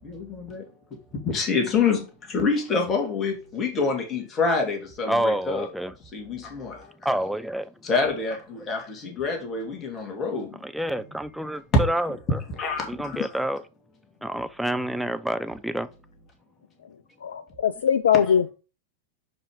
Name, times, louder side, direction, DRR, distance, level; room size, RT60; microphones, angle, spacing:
voice 1, 0.0-1.0 1.2-5.7 6.1-6.9 7.8-10.6 11.0-11.1 12.5-13.3 18.3-18.4, left 5 dB, 25° left, 2.3 m, -27 dB
voice 2, 5.1-5.9 7.0-7.7 10.6-12.4 12.9-13.6 14.2-15.9, right 1 dB, ahead, 0.6 m, -28 dB
voice 3, 17.2-18.5, left 8 dB, 65° left, 0.3 m, -21 dB
5.3 x 5.1 x 5.1 m
figure-of-eight pair, 90°, 0 cm